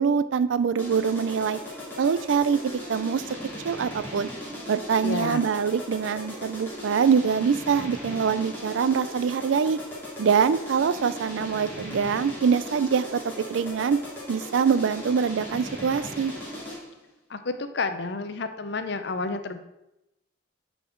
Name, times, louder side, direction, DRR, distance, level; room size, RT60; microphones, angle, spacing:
voice 1, 0.0-1.6 2.0-2.6 2.9-3.2 3.6-4.3 4.7-9.8 10.2-13.2 13.5-14.0 14.3-16.3, right 6 dB, 85° right, 15 dB, 0.4 m, -24 dB
sound 1, 0.8-17.0, equal, 10° left, 2.2 m, -38 dB
voice 2, 5.0-5.4 17.3-19.6, left 3 dB, 60° left, 9 dB, 0.6 m, -30 dB
8.9 x 4.2 x 4.5 m, 0.89 s
head